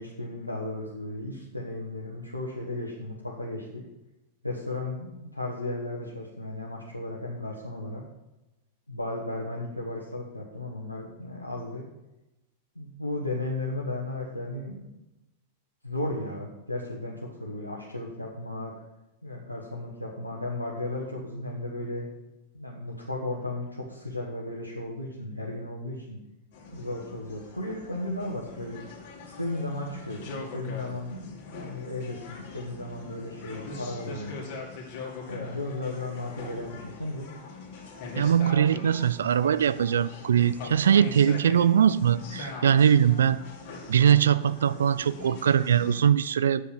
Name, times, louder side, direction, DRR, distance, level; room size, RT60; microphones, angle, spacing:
voice 1, 0.0-3.8 4.4-8.0 8.9-11.8 12.7-14.9 15.8-18.7 19.2-22.1 22.5-26.2 26.7-28.8 29.2-34.5 35.3-37.3, left 2 dB, 85° left, -3 dB, 1.4 m, -35 dB
sound 1, 26.5-46.0, left 3 dB, 45° left, 2.6 m, -42 dB
voice 2, 38.2-43.4 43.9-46.7, right 8 dB, 65° right, 16 dB, 0.4 m, -21 dB
8.3 x 6.5 x 7.8 m, 0.98 s
figure-of-eight pair, 90°, 0 cm